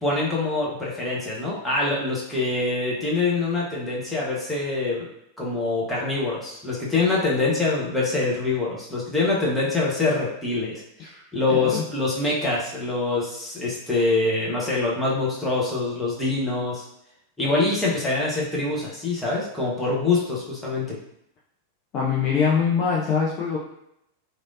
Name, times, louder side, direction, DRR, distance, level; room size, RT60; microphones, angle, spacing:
voice 1, 0.0-5.1 5.4-10.8 11.3-16.9 17.4-21.0, left 3 dB, 5° left, -6 dB, 0.9 m, -24 dB
voice 2, 11.5-11.8 21.9-23.6, left 6 dB, 35° left, -3 dB, 0.5 m, -23 dB
3.1 x 2.6 x 2.6 m, 0.78 s
figure-of-eight pair, 90°, 0 cm